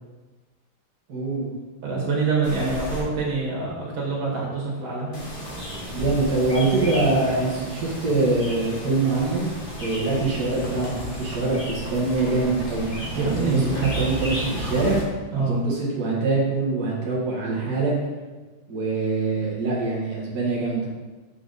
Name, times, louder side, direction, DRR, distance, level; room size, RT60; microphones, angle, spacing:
voice 1, 1.1-1.5 5.9-9.5 9.8-15.0 15.5-17.9 18.7-20.9, right 3 dB, 55° right, -5 dB, 2.0 m, -24 dB
voice 2, 1.8-5.2 13.2-13.9 15.3-15.6, right 4 dB, 80° right, -4 dB, 2.7 m, -25 dB
sound 1, 2.4-3.0 5.1-15.0, equal, 30° left, 1.5 m, -33 dB
6.5 x 6.1 x 4.0 m, 1.3 s
omnidirectional pair, 2.1 m